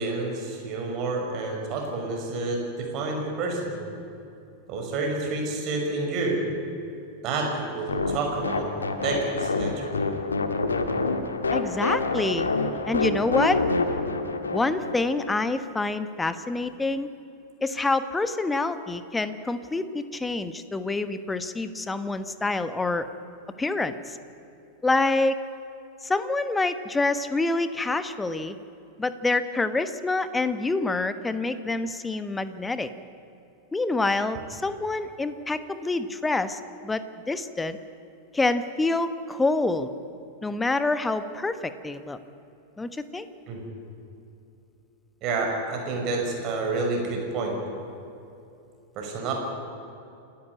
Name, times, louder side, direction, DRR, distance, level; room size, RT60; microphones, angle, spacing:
voice 1, 0.0-3.8 4.7-6.4 7.2-8.7 9.0-9.9 43.5-43.6 45.2-47.6 49.0-49.3, right 3 dB, 40° right, 1 dB, 5.7 m, -29 dB
sound 1, 7.9-15.3, left 3 dB, 75° left, 1.5 m, -27 dB
voice 2, 11.5-12.5 12.9-13.6 14.5-17.1 17.6-23.1 23.6-24.2 24.8-25.4 26.0-28.6 29.0-32.9 33.7-37.8 38.3-39.9 40.4-42.2 42.8-43.3, left 3 dB, 10° left, 12 dB, 1.1 m, -27 dB
28.0 x 13.0 x 9.6 m, 2.8 s
figure-of-eight pair, 90°, 0 cm